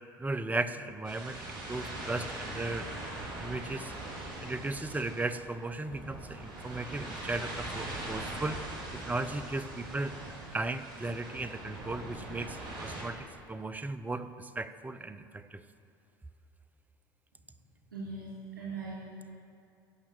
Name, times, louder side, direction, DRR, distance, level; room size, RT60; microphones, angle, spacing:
voice 1, 0.2-2.9 3.4-3.9 4.4-8.6 8.9-10.1 10.5-15.6, right 2 dB, 15° right, 12 dB, 0.7 m, -36 dB
sound 1, 1.0-13.0, right 1 dB, 45° right, 3.7 m, -41 dB
voice 2, 17.9-19.3, right 3 dB, 80° right, -7 dB, 3.0 m, -41 dB
15.5 x 5.9 x 8.6 m, 2.6 s
figure-of-eight pair, 65°, 11 cm